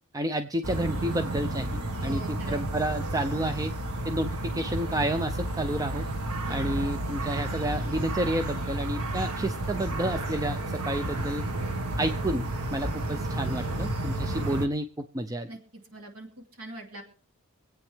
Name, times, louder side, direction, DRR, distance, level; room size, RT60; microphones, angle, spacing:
voice 1, 0.1-3.7 4.0-6.0 6.5-11.4 12.0-15.5, right 1 dB, 15° right, 8 dB, 0.5 m, -30 dB
sound 1, 0.6-14.7, right 1 dB, 85° right, 1.5 m, -31 dB
voice 2, 2.0-2.7 6.5-6.8 15.5-17.0, right 1 dB, 70° right, 2 dB, 2.9 m, -43 dB
25.5 x 8.8 x 3.4 m, 0.43 s
head